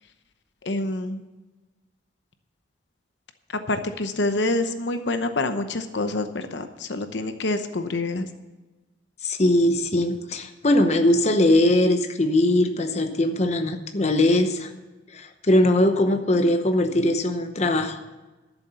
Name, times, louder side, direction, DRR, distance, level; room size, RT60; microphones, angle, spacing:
voice 1, 0.6-1.2 3.7-8.3, left 2 dB, 70° left, 8 dB, 0.8 m, -27 dB
voice 2, 9.2-14.7 15.1-18.0, left 1 dB, 35° left, 6 dB, 0.9 m, -21 dB
12.0 x 7.2 x 6.8 m, 1.2 s
head